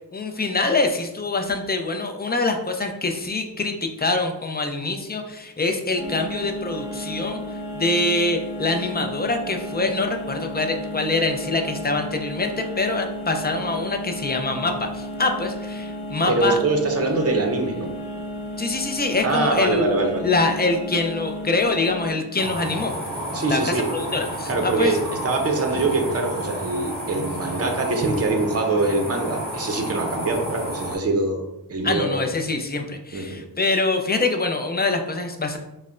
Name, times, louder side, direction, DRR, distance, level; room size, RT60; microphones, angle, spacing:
voice 1, 0.1-16.6 18.6-19.9 20.2-22.9 23.5-24.9 31.8-35.6, left 3 dB, 25° left, 4 dB, 0.5 m, -24 dB
sound 1, 6.0-22.1, equal, 55° left, 0.8 m, -33 dB
voice 2, 16.3-17.9 19.2-20.3 23.3-23.8 24.5-25.0 25.2-31.4 31.7-32.2 33.1-33.4, right 3 dB, 35° right, 3 dB, 0.6 m, -23 dB
sound 2, 22.4-31.0, equal, 5° left, 1.4 m, -31 dB
5.5 x 2.1 x 2.5 m, 0.90 s
wide cardioid pair, 65°, 41 cm